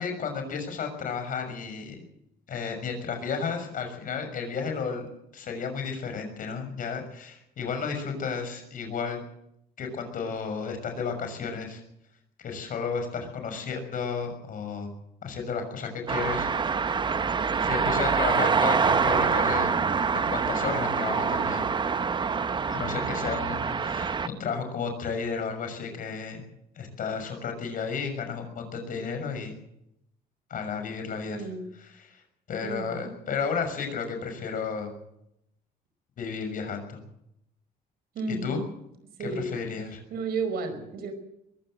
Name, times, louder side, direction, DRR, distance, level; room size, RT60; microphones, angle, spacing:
voice 1, 0.0-2.0 2.5-5.1 5.3-9.2 9.8-11.8 12.4-14.9 15.2-16.9 17.6-19.8 20.1-21.6 22.7-26.4 26.7-29.6 30.5-31.4 32.1-32.2 32.5-34.9 36.2-37.0 38.4-38.6 39.2-40.0, left 5 dB, 55° left, 6 dB, 6.2 m, -33 dB
sound 1, 16.1-24.3, right 5 dB, 25° right, 0.8 m, -25 dB
voice 2, 22.8-23.3 31.3-31.7 32.6-33.1 38.1-38.6 39.2-39.6 40.1-41.1, right 3 dB, 65° right, 9 dB, 5.3 m, -33 dB
22.0 x 15.5 x 7.8 m, 0.79 s
cardioid pair, 110°, 17 cm